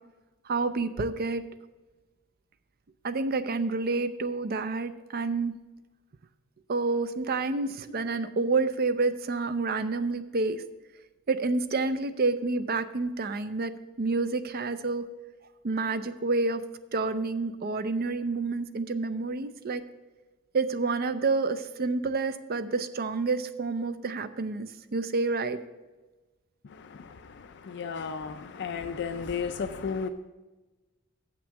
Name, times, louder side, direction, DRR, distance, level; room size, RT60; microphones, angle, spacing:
voice 1, 0.5-1.4 3.0-5.5 6.7-10.6 11.3-13.7 14.0-15.0 15.6-16.6 16.9-19.8 20.5-25.6, right 3 dB, 45° right, 0.5 m, -28 dB
voice 2, 26.6-30.1, left 5 dB, 55° left, 0.4 m, -34 dB
7.4 x 6.0 x 7.2 m
head